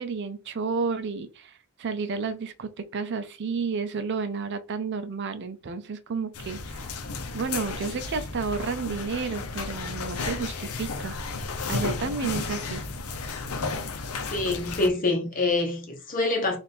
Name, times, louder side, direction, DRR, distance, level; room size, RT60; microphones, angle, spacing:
voice 1, 0.0-6.9 7.3-11.2 11.7-12.8, right 5 dB, 55° right, 0.5 m, -31 dB
sound 1, 6.3-14.9, left 4 dB, 85° left, 0.7 m, -33 dB
voice 2, 14.3-16.6, left 2 dB, 40° left, 0.9 m, -25 dB
3.5 x 2.5 x 4.3 m
head